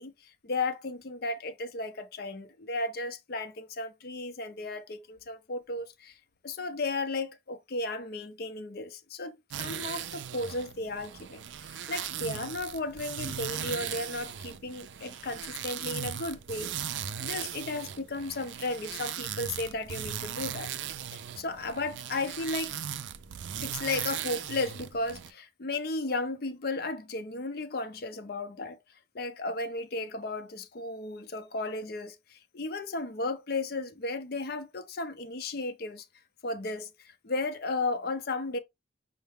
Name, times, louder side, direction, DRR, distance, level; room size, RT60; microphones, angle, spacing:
voice 1, 0.0-6.2 6.4-20.8 21.1-22.8 23.6-28.8 29.1-36.1 36.4-38.6, left 2 dB, 55° left, 0.6 m, -34 dB
sound 1, 9.5-25.3, right 9 dB, 75° right, 0.4 m, -38 dB
5.5 x 2.1 x 3.4 m
head